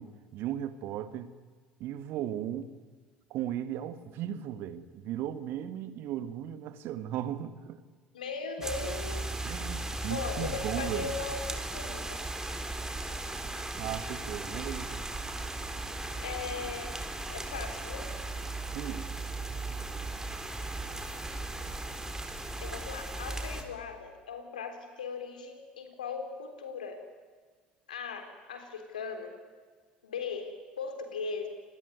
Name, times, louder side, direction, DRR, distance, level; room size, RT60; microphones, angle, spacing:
voice 1, 0.0-1.3 1.8-2.7 3.3-7.8 9.4-11.1 13.8-15.1 18.7-19.1, right 11 dB, 60° right, 12 dB, 1.8 m, -36 dB
voice 2, 8.1-9.3 10.1-11.4 11.7-12.2 16.1-17.0 17.3-18.1 22.6-27.0 27.9-29.3 30.0-31.5, left 5 dB, 80° left, 6 dB, 3.7 m, -38 dB
sound 1, 8.6-23.6, right 2 dB, 10° right, 3.9 m, -37 dB
27.5 x 21.0 x 9.5 m, 1.5 s
hypercardioid pair, 65°, 4 cm